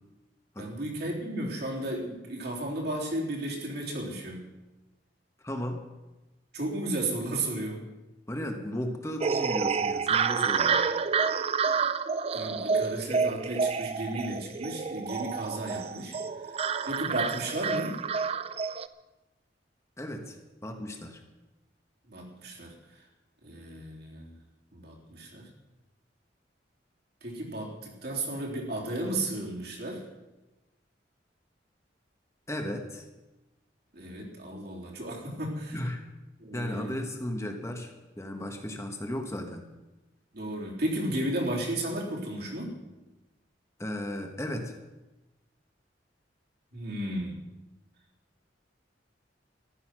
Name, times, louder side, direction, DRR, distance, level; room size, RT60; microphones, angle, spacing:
voice 1, 0.6-4.4 6.5-7.8 12.3-16.2 16.4-18.0 22.1-22.7 23.4-24.3 24.7-25.5 27.2-30.0 33.9-35.8 36.4-37.0 40.3-42.7 46.7-47.4, right 1 dB, 60° right, -2 dB, 3.6 m, -34 dB
voice 2, 5.4-5.8 8.3-10.8 20.0-20.4 20.6-21.2 32.5-33.0 35.7-36.0 36.5-39.6 43.8-44.7, left 1 dB, 15° left, 4 dB, 1.3 m, -35 dB
sound 1, 9.2-18.9, right 5 dB, 35° right, 0.5 m, -29 dB
14.5 x 12.0 x 6.2 m, 1.1 s
head